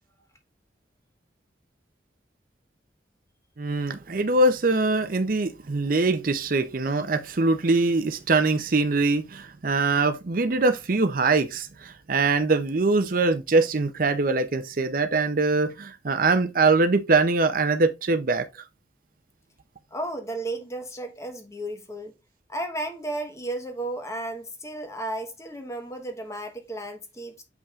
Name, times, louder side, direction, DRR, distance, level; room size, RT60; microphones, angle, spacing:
voice 1, 3.6-18.5, right 3 dB, 50° right, 0.6 m, -23 dB
voice 2, 19.9-22.1 22.5-27.4, right 1 dB, 15° left, 1.1 m, -33 dB
7.0 x 5.5 x 2.4 m
head